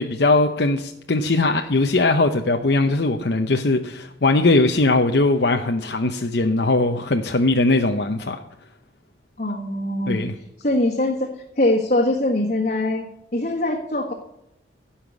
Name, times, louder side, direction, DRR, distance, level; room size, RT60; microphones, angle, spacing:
voice 1, 0.0-8.4 10.1-10.3, left 2 dB, 60° left, 4 dB, 0.8 m, -20 dB
voice 2, 9.4-10.2 10.6-11.3 11.6-14.1, left 1 dB, 45° left, -2 dB, 1.6 m, -22 dB
16.5 x 5.8 x 8.2 m, 0.84 s
head